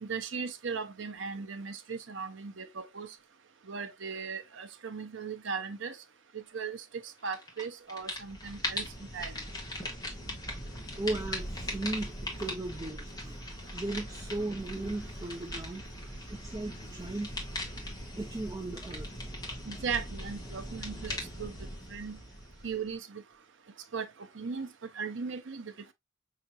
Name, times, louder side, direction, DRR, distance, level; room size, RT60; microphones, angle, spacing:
voice 1, 0.0-3.1 3.7-6.0 6.3-6.8 7.2-8.8 9.1-9.3 19.7-21.5 21.9-22.2 22.6-23.2 23.9-24.1 24.3-24.7 25.0-25.9, right 5 dB, 65° right, 0.7 m, -37 dB
sound 1, 7.3-7.6 7.9-22.9, left 1 dB, 20° left, 1.3 m, -40 dB
voice 2, 11.0-13.4 13.7-15.8 16.3-17.3 18.2-19.1, right 2 dB, 20° right, 0.5 m, -36 dB
5.7 x 2.8 x 2.7 m
head